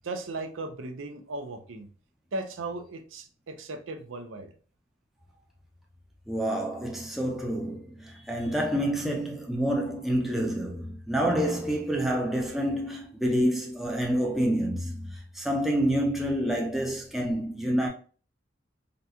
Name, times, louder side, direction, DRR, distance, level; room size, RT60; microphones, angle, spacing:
voice 1, 0.0-1.9 2.3-4.5, right 2 dB, 90° right, 0.6 m, -37 dB
voice 2, 6.3-17.9, equal, ahead, 0.5 m, -28 dB
3.9 x 2.2 x 2.7 m
head